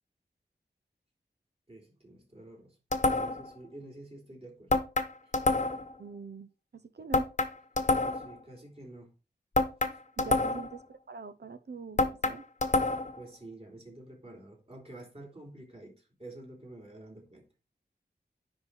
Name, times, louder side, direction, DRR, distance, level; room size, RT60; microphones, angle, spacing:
voice 1, 1.7-2.7 3.1-4.7 7.0-7.1 7.9-9.1 10.2-10.4 12.8-17.4, right 1 dB, 35° right, 3.5 m, -49 dB
sound 1, 2.9-3.5 4.7-5.9 7.1-8.3 9.5-10.8 12.0-13.2, left 2 dB, 45° left, 1.1 m, -27 dB
voice 2, 6.0-7.3 9.8-12.4, right 5 dB, 70° right, 0.9 m, -44 dB
10.0 x 4.1 x 4.7 m
wide cardioid pair, 80°, 18 cm